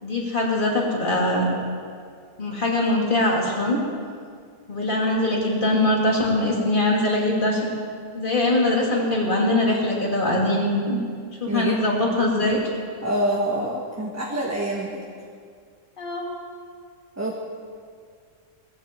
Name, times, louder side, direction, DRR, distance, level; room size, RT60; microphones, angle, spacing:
voice 1, 0.0-1.5 2.4-3.8 4.7-7.7 8.1-11.0 11.4-12.6 16.0-16.3, left 1 dB, 35° left, -3 dB, 2.9 m, -22 dB
voice 2, 11.4-11.8 13.0-15.0 17.2-17.4, right 1 dB, 10° right, -3 dB, 1.3 m, -26 dB
18.5 x 15.5 x 4.5 m, 2.1 s
omnidirectional pair, 1.4 m